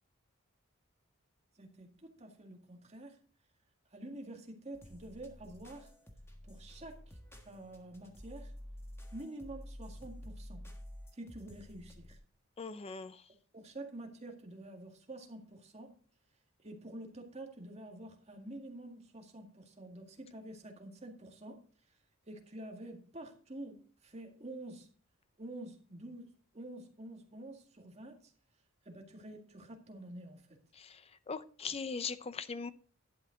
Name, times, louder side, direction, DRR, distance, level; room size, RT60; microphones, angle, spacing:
voice 1, 1.6-3.2 3.9-5.9 6.4-7.2 7.4-8.5 9.1-10.7 11.1-12.2 13.5-16.0 16.6-21.6 21.9-22.0 22.3-24.9 25.4-28.3 28.8-30.6, right 1 dB, 30° right, 1.9 m, -48 dB
sound 1, 4.7-12.2, equal, 10° left, 1.5 m, -50 dB
voice 2, 12.6-13.2 30.8-31.0 31.3-32.7, left 5 dB, 30° left, 0.5 m, -40 dB
11.5 x 8.8 x 3.9 m
head